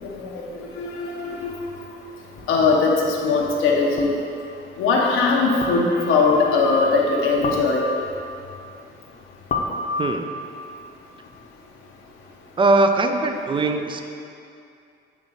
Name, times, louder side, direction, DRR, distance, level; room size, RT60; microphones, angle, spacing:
voice 1, 0.0-1.5 2.5-4.1 4.8-7.8, left 4 dB, 90° left, -2 dB, 0.8 m, -20 dB
sound 1, 2.4-2.5 4.0-4.3 5.6-6.2 7.4-8.2 9.5-10.4, left 3 dB, 45° left, 0.7 m, -29 dB
voice 2, 10.0-10.3 12.6-14.0, right 2 dB, 25° right, 6 dB, 0.4 m, -20 dB
8.2 x 3.0 x 4.0 m, 2.6 s
cardioid pair, 90°, 20 cm